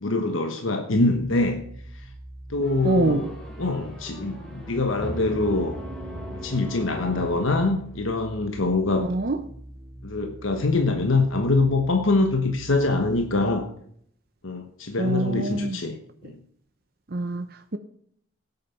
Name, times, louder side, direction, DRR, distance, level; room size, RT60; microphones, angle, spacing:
voice 1, 0.0-1.6 1.9-2.1 2.5-3.3 3.6-5.8 6.4-9.1 10.0-13.7 14.4-16.0 16.2-16.4, left 2 dB, 80° left, 5 dB, 1.2 m, -24 dB
sound 1, 0.9-13.6, right 1 dB, 30° right, 4.9 m, -44 dB
sound 2, 2.6-8.2, equal, 5° left, 3.6 m, -38 dB
voice 2, 2.8-3.2 9.0-9.4 15.0-15.8 17.1-17.8, right 2 dB, 50° right, 8 dB, 0.7 m, -25 dB
17.5 x 8.4 x 5.7 m, 0.67 s
head